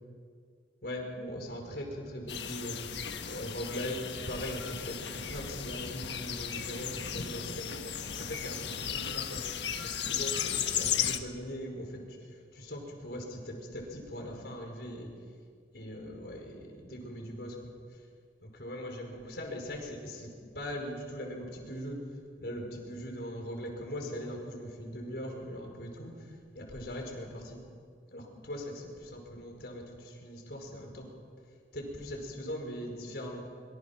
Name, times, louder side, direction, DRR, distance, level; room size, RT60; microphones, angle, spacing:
voice 1, 0.8-2.8 3.3-15.1 15.7-17.7 18.4-20.3 20.5-22.0 22.4-27.6 28.1-31.1 31.7-33.4, equal, 65° left, 1 dB, 5.4 m, -40 dB
sound 1, 2.3-11.2, left 8 dB, 85° left, 1.5 m, -35 dB
25.0 x 25.0 x 6.0 m, 2.1 s
head